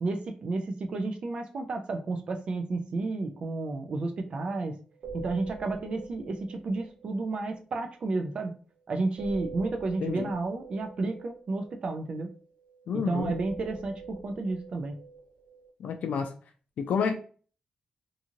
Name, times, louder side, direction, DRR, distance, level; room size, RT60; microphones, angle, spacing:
voice 1, 0.0-4.8 5.1-8.5 8.9-12.3 12.9-15.0, right 3 dB, 45° right, 4 dB, 0.3 m, -32 dB
sound 1, 4.1-4.2 4.4-4.7 4.9-8.3 9.2-12.8 13.2-15.7, right 4 dB, 70° right, 0.8 m, -45 dB
voice 2, 10.0-10.3 12.9-13.3 15.8-16.3 16.8-17.1, left 6 dB, 70° left, 5 dB, 0.4 m, -29 dB
2.6 x 2.4 x 2.8 m, 0.40 s
wide cardioid pair, 175°, 3 cm